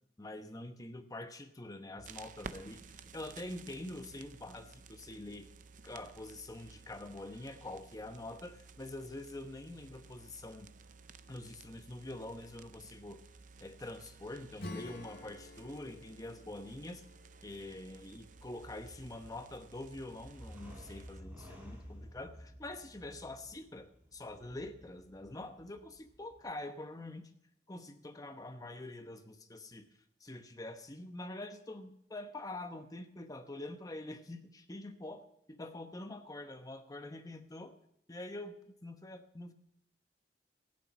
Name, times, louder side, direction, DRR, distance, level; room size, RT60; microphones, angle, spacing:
voice 1, 0.2-5.5 5.8-10.7 11.3-13.2 13.6-17.0 17.4-27.3 27.7-29.9 30.2-37.7 38.1-39.5, left 2 dB, 20° left, 7 dB, 1.0 m, -45 dB
sound 1, 2.0-21.2, right 4 dB, 45° right, 0.6 m, -55 dB
Acoustic guitar / Strum, 14.6-18.9, left 2 dB, 65° left, 1.8 m, -51 dB
sound 2, 18.2-26.5, equal, 10° right, 4.1 m, -54 dB
15.0 x 9.1 x 5.9 m, 0.74 s
head